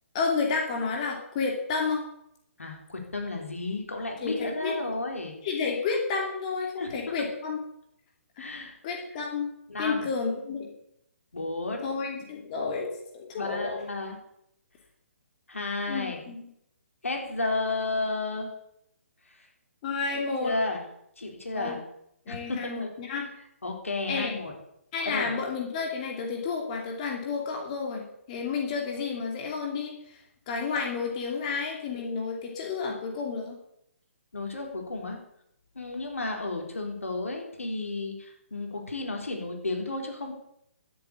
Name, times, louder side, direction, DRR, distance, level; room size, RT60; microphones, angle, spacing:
voice 1, 0.1-2.0 4.2-4.7 5.4-7.6 8.4-8.5 8.8-9.5 9.8-10.7 11.8-13.8 15.9-16.5 19.8-20.6 21.5-21.8 22.3-23.3 24.1-24.3 24.9-30.2 30.5-33.6, left 4 dB, 30° left, 0 dB, 2.9 m, -31 dB
voice 2, 2.6-5.4 6.8-7.0 8.4-8.7 9.7-10.1 11.3-11.9 13.3-14.2 15.5-16.3 17.0-18.5 19.3-19.5 20.1-20.8 21.2-21.8 22.3-22.9 23.6-24.5 25.1-25.3 34.3-35.2 35.8-40.3, left 2 dB, 70° left, 2 dB, 3.9 m, -32 dB
13.0 x 7.9 x 8.4 m, 0.76 s
figure-of-eight pair, 135°, 8 cm